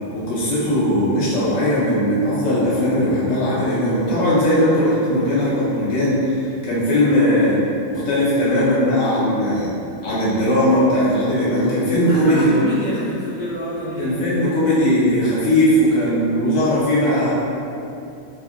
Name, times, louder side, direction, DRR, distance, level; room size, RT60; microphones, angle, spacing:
voice 1, 0.1-7.6 7.9-9.7 10.0-12.5 14.0-17.3, equal, 75° left, -9 dB, 0.9 m, -18 dB
voice 2, 12.1-14.4, equal, 40° left, -12 dB, 0.9 m, -27 dB
2.6 x 2.4 x 2.4 m, 2.7 s
omnidirectional pair, 1.4 m